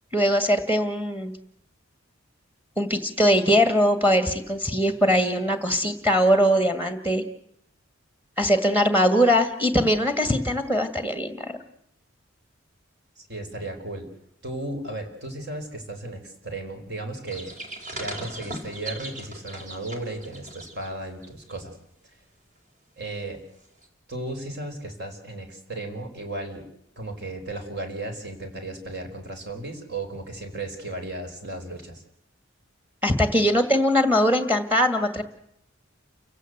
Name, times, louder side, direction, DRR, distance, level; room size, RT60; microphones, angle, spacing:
voice 1, 0.1-1.3 2.8-7.2 8.4-11.6 33.0-35.2, equal, 10° right, 9 dB, 1.9 m, -21 dB
voice 2, 13.3-14.1 14.4-17.5 17.9-21.7 23.0-23.4 24.1-26.6 27.0-32.0, right 2 dB, 55° right, 5 dB, 4.8 m, -35 dB
sound 1, 17.3-20.9 21.2-21.5 23.8-23.9, right 2 dB, 40° right, 4.5 m, -38 dB
29.0 x 16.5 x 8.1 m, 0.75 s
head